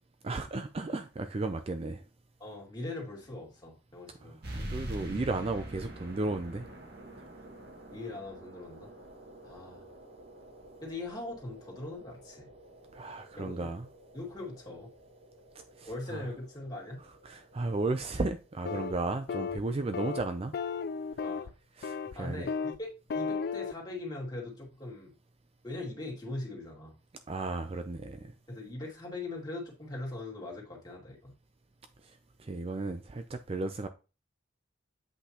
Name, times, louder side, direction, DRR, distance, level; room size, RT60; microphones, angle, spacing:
voice 1, 0.2-2.0 4.2-6.7 12.9-13.9 15.8-16.3 17.2-20.5 21.8-22.4 27.3-28.3 32.4-33.9, right 2 dB, 30° right, 0.4 m, -34 dB
voice 2, 2.4-4.4 7.9-8.9 9.4-9.8 10.8-12.5 13.4-13.7 14.1-14.9 15.9-17.0 21.2-21.5 22.1-25.1 25.6-26.9 28.5-31.3, left 2 dB, 20° left, 2.3 m, -41 dB
sound 1, 4.4-19.5, right 1 dB, 55° right, 1.7 m, -47 dB
sound 2, 18.6-19.0 19.3-19.6 19.9-20.2 20.5-21.5 21.8-22.1 22.5-22.8 23.1-23.7, left 5 dB, 55° left, 0.3 m, -34 dB
8.0 x 5.7 x 2.9 m
head